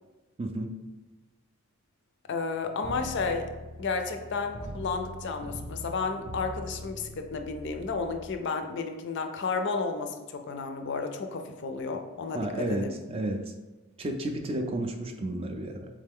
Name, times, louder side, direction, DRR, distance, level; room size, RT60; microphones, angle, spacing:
voice 1, 0.4-0.7 12.3-13.4 14.0-15.9, right 1 dB, 25° right, 4 dB, 0.3 m, -32 dB
voice 2, 2.3-3.5 3.8-13.0, left 4 dB, 55° left, 6 dB, 0.4 m, -32 dB
sound 1, 2.8-8.3, equal, 65° right, 0.6 m, -42 dB
3.7 x 3.2 x 3.5 m, 1.2 s
head